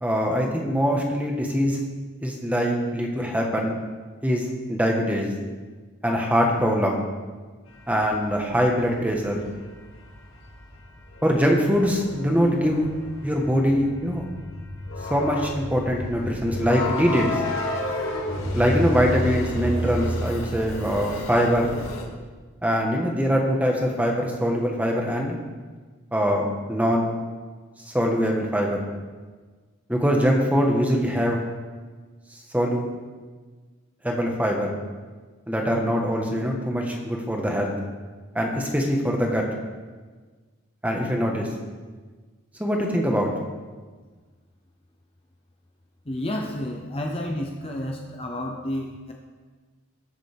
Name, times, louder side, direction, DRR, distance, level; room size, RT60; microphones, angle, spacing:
voice 1, 0.0-1.8 2.2-3.7 4.2-5.3 6.0-7.0 7.9-9.4 11.2-12.8 13.2-14.2 15.1-17.3 18.5-21.7 22.6-25.3 26.1-27.1 27.9-28.8 29.9-31.4 32.5-32.9 34.0-34.7 35.5-37.7 38.3-39.4 40.8-41.5 42.6-43.3, equal, 5° right, 0 dB, 1.3 m, -23 dB
sound 1, 7.8-22.0, left 1 dB, 75° left, 2.1 m, -31 dB
voice 2, 46.1-49.1, left 1 dB, 25° left, 1 dB, 0.7 m, -30 dB
20.0 x 7.3 x 3.5 m, 1.4 s
head